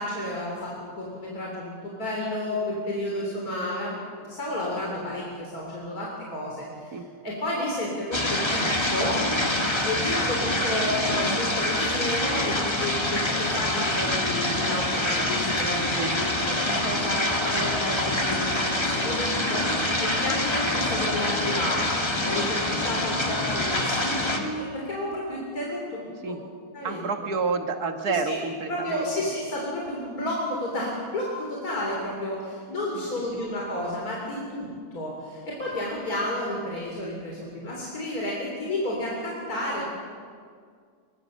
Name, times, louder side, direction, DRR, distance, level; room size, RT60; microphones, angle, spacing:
voice 1, 0.0-6.7 7.2-9.2 9.8-16.5 16.8-26.0 26.7-27.1 28.1-28.4 28.7-34.7 34.9-39.8, left 1 dB, 70° left, -3 dB, 4.0 m, -31 dB
sound 1, 8.1-24.4, left 1 dB, 15° left, 1.9 m, -26 dB
voice 2, 26.8-29.1 32.9-33.0 33.3-33.4, right 4 dB, 80° right, 6 dB, 2.1 m, -29 dB
22.5 x 22.0 x 6.5 m, 2.1 s
omnidirectional pair, 1.6 m